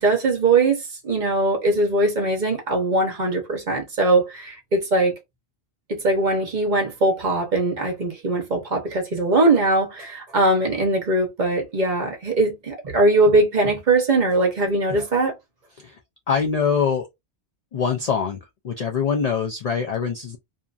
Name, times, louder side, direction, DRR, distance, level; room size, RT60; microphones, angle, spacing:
voice 1, 0.0-5.1 5.9-15.3, right 2 dB, 45° right, 1.0 m, -21 dB
voice 2, 16.3-17.1 17.7-18.4 18.6-20.4, left 6 dB, 55° left, 0.4 m, -23 dB
2.7 x 2.5 x 2.3 m
omnidirectional pair, 1.1 m